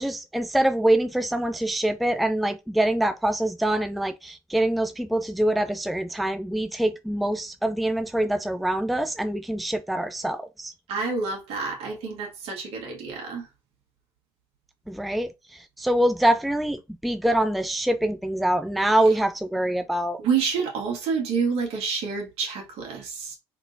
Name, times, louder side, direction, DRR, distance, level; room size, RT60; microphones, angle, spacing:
voice 1, 0.0-10.7 14.9-20.2, right 1 dB, ahead, 0.4 m, -24 dB
voice 2, 10.9-13.5 20.2-23.4, right 5 dB, 65° right, 2.0 m, -28 dB
3.9 x 3.5 x 2.6 m
hypercardioid pair, 70°, 11 cm